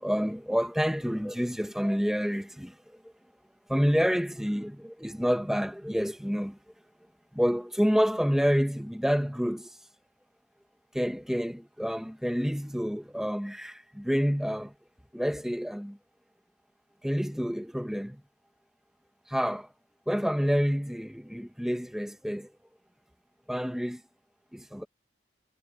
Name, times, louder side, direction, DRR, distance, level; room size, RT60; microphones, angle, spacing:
voice 1, 0.0-3.0 3.7-6.6 7.3-9.7 10.9-14.7 15.1-16.0 17.0-18.2 19.3-19.7 20.1-22.5 23.5-24.0 24.5-24.8, equal, ahead, 1.3 m, -28 dB
head